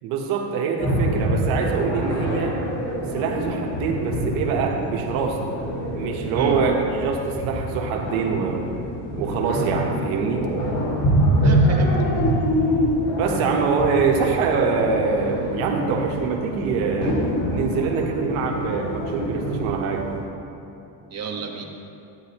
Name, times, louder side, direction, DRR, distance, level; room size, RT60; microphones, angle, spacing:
voice 1, 0.0-2.6 3.1-5.4 6.0-8.7 9.2-10.5 13.2-17.2 17.5-20.1, right 5 dB, 90° right, 1 dB, 1.2 m, -24 dB
sound 1, 0.8-20.2, equal, 80° left, 2.2 m, -25 dB
voice 2, 6.3-6.7 11.4-12.0 12.2-12.4 21.1-21.6, right 5 dB, 35° right, 0 dB, 1.3 m, -30 dB
11.5 x 9.6 x 3.0 m, 2.8 s
cardioid pair, 110°, 48 cm